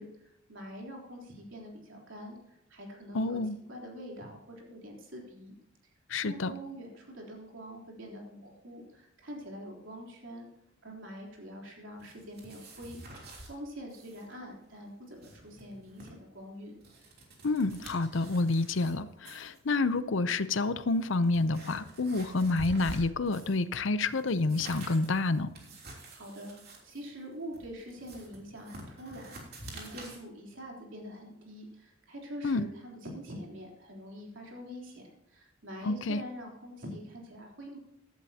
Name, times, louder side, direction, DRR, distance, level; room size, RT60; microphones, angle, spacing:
voice 1, 0.0-3.4 3.7-5.6 5.8-5.9 6.2-10.5 10.8-16.8 26.1-26.5 26.8-29.4 29.7-37.8, equal, 70° right, -1 dB, 3.6 m, -45 dB
voice 2, 3.1-3.6 6.1-6.5 17.4-25.5 32.4-32.6 35.8-36.2, left 3 dB, 70° left, 14 dB, 0.7 m, -28 dB
sound 1, 12.0-13.5 13.9-14.3 14.5-14.6 15.0-16.1 16.6-18.9 19.2-19.6 20.4-20.5 20.9-23.6 24.0-30.2, right 1 dB, 55° right, 3.1 m, -48 dB
15.5 x 11.5 x 2.9 m, 0.82 s
head